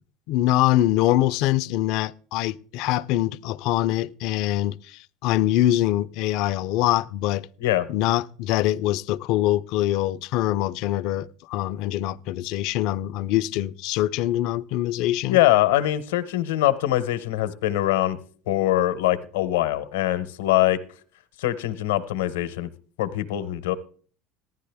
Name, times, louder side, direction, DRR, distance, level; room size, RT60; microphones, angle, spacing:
voice 1, 0.3-7.5 7.9-15.4, left 14 dB, 65° left, 0.4 m, -24 dB
voice 2, 15.3-18.2 18.5-20.8 21.4-22.7 23.0-23.8, left 14 dB, 85° left, 0.8 m, -23 dB
15.0 x 11.0 x 3.4 m
supercardioid pair, 100°, 0 cm